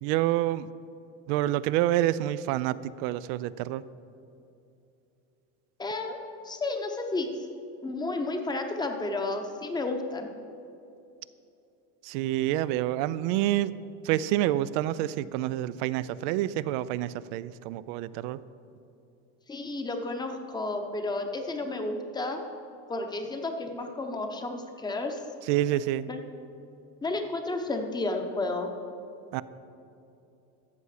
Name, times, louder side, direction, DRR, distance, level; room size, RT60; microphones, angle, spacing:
voice 1, 0.0-0.7 1.3-3.8 12.0-13.7 14.0-18.4 25.5-26.1 29.3-29.4, right 14 dB, 85° right, 16 dB, 0.5 m, -28 dB
voice 2, 5.8-6.2 6.4-7.5 7.8-10.3 19.5-22.4 22.9-25.2 26.1-26.2 27.0-28.7, left 2 dB, 10° left, 5 dB, 0.8 m, -32 dB
13.5 x 6.9 x 4.9 m, 2.7 s
cardioid pair, 145°, 35 cm